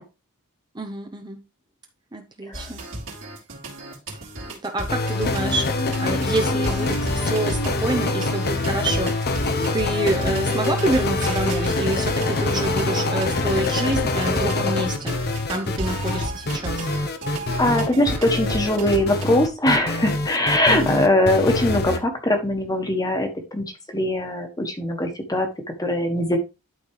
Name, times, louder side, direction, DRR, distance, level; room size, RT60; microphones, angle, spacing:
voice 1, 0.7-1.4 2.1-2.8 4.5-5.6 6.0-9.3 9.7-16.9 20.7-21.0, right 2 dB, 20° right, 4 dB, 0.8 m, -27 dB
sound 1, 2.5-19.2, right 2 dB, 60° right, 3.0 m, -34 dB
sound 2, 4.9-22.0, left 3 dB, 45° left, 0.9 m, -25 dB
voice 2, 17.6-25.5 25.8-26.4, left 1 dB, 15° left, 5 dB, 1.5 m, -21 dB
11.5 x 4.3 x 3.1 m, 0.27 s
head